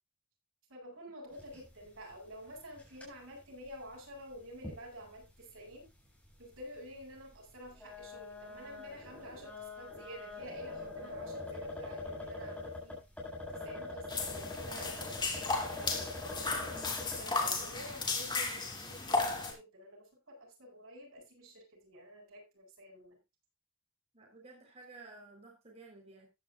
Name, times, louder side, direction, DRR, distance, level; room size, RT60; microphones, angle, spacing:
voice 1, 0.7-5.9 6.4-13.0 13.5-16.8 17.2-23.2, equal, 70° right, 1 dB, 8.0 m, -50 dB
sound 1, 1.3-1.8 2.1-2.2 2.7-3.1 3.7-3.8 4.6-4.8 5.2-5.3 6.4-6.5 7.7-17.3, left 2 dB, 5° left, 7.7 m, -43 dB
sound 2, 14.1-19.5, left 3 dB, 20° left, 3.0 m, -35 dB
voice 2, 24.1-26.3, right 3 dB, 30° right, 0 dB, 3.7 m, -53 dB
15.0 x 11.0 x 2.3 m, 0.25 s
head